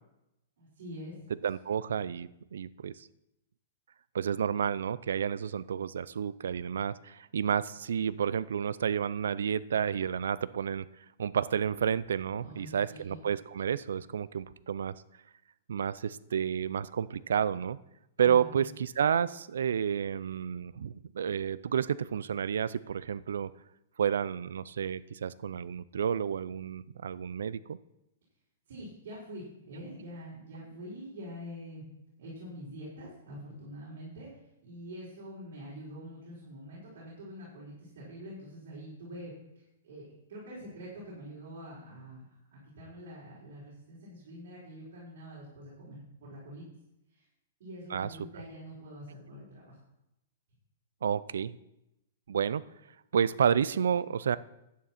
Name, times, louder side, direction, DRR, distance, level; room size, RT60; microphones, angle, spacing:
voice 1, 0.6-1.1 12.3-13.2 18.2-18.6 28.7-31.8 32.2-34.3 34.6-46.6 47.1-47.2 47.6-49.8, equal, 60° right, -7 dB, 4.6 m, -45 dB
voice 2, 1.4-3.1 4.1-10.9 11.2-14.9 15.7-17.8 18.2-23.5 24.0-27.8 47.9-48.2 51.0-51.5 52.3-52.6 53.1-54.4, right 8 dB, 90° right, 18 dB, 0.5 m, -30 dB
11.0 x 9.4 x 4.3 m, 0.87 s
hypercardioid pair, 165°, 0 cm